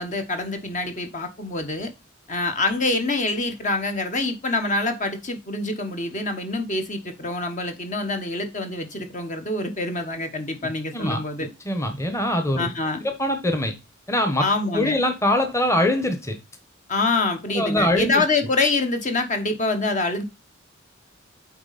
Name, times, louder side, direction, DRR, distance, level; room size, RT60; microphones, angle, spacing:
voice 1, 0.0-1.9 2.3-11.5 12.6-13.0 14.4-15.0 16.9-20.2, left 3 dB, 40° left, 1.1 m, -25 dB
voice 2, 10.6-11.2 11.6-12.7 13.0-13.7 14.1-14.4 14.7-16.4 17.5-18.2, left 1 dB, 15° left, 1.1 m, -23 dB
8.8 x 4.1 x 4.1 m
head